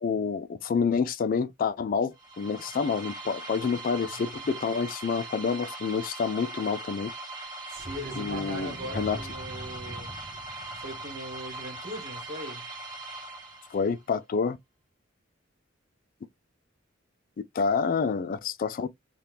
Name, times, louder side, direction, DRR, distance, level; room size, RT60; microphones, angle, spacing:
voice 1, 0.0-7.1 8.2-9.2 13.7-14.6 17.5-18.9, left 5 dB, 45° left, 0.3 m, -28 dB
sound 1, 2.1-14.0, right 2 dB, 20° right, 1.0 m, -40 dB
sound 2, 7.7-12.5 12.8-12.9, right 1 dB, 5° right, 0.6 m, -43 dB
voice 2, 7.7-10.2 10.4-12.6, equal, 45° right, 1.4 m, -40 dB
2.8 x 2.4 x 3.4 m
head